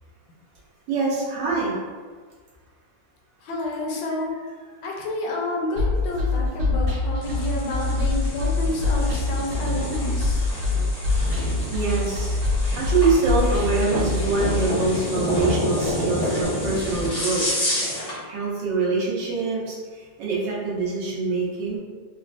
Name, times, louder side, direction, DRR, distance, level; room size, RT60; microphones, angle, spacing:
voice 1, 0.9-1.7 9.8-10.1 10.7-10.9 11.7-12.4 12.7-17.5 18.3-19.7 20.2-21.8, right 3 dB, 85° right, -5 dB, 1.5 m, -25 dB
voice 2, 3.4-4.3 4.8-10.4, left 2 dB, 80° left, -1 dB, 1.3 m, -29 dB
sound 1, 5.8-14.6, left 2 dB, 55° right, 1.0 m, -24 dB
sound 2, 7.2-18.2, equal, 40° left, 0.6 m, -29 dB
4.0 x 2.1 x 2.5 m, 1.5 s
omnidirectional pair, 2.0 m